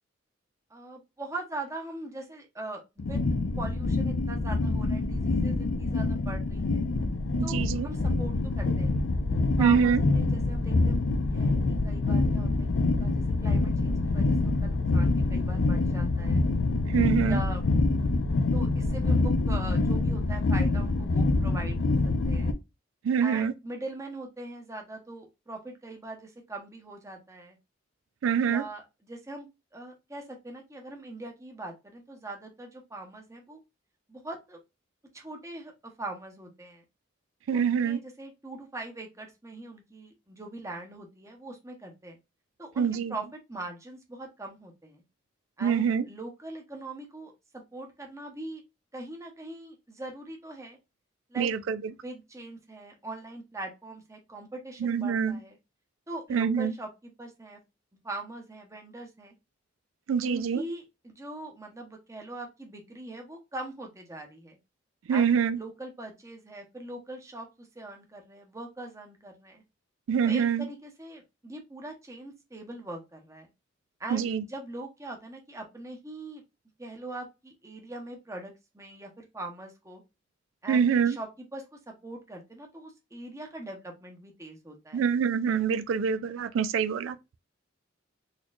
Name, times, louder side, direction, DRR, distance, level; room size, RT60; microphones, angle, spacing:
voice 1, 0.7-3.2 3.6-6.9 7.4-9.0 9.6-11.0 11.3-16.4 17.3-17.6 18.5-22.0 22.3-22.5 23.2-27.6 28.4-33.6 34.1-34.6 35.1-36.8 37.5-42.2 42.6-45.0 45.6-48.6 48.9-50.8 51.3-51.5 52.0-55.6 56.1-57.6 58.0-59.3 60.2-64.6 65.1-69.6 70.2-73.5 74.0-76.4 76.8-80.0 80.6-85.1, right 2 dB, 15° right, 0.8 m, -41 dB
sound 1, 3.0-22.5, left 2 dB, 75° left, 0.5 m, -26 dB
voice 2, 7.4-7.9 9.6-10.0 16.9-17.4 23.0-23.5 28.2-28.6 37.5-38.0 42.8-43.1 45.6-46.0 51.4-51.8 54.8-55.4 56.3-56.7 60.1-60.6 65.1-65.6 70.1-70.6 74.1-74.4 80.7-81.2 84.9-87.2, right 7 dB, 85° right, 0.3 m, -25 dB
4.1 x 3.0 x 2.3 m
head